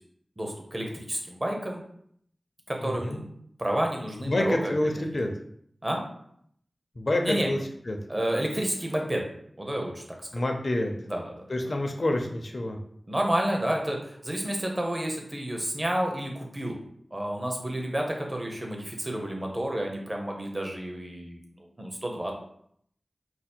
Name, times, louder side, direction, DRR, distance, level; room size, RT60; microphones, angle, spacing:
voice 1, 0.4-1.8 2.7-3.3 3.6-5.0 5.8-6.0 7.2-7.5 8.1-9.2 9.6-10.4 11.0-11.5 13.1-16.8 17.1-21.4 21.8-22.3, right 1 dB, 30° right, 1 dB, 1.0 m, -30 dB
voice 2, 2.8-3.2 4.3-5.3 7.0-7.6 7.9-8.0 10.3-10.9 11.5-12.8, left 1 dB, 55° left, 3 dB, 0.7 m, -27 dB
5.0 x 2.1 x 4.4 m, 0.67 s
wide cardioid pair, 60°, 0 cm